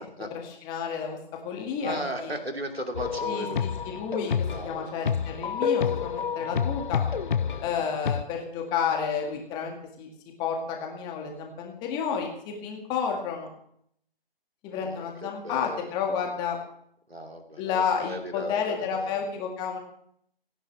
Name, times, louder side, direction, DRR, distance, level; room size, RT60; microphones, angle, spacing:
voice 1, 0.7-1.2 1.4-2.0 3.3-7.0 7.6-10.1 10.4-13.5 14.6-16.6 17.6-19.8, left 6 dB, 15° left, 2 dB, 1.8 m, -31 dB
voice 2, 1.8-3.6 4.4-5.1 14.7-15.9 17.1-19.2, right 1 dB, 85° right, 3 dB, 2.9 m, -36 dB
sound 1, 2.9-8.2, left 7 dB, 55° left, 0.6 m, -28 dB
29.5 x 10.0 x 3.4 m, 0.67 s
figure-of-eight pair, 140°, 30 cm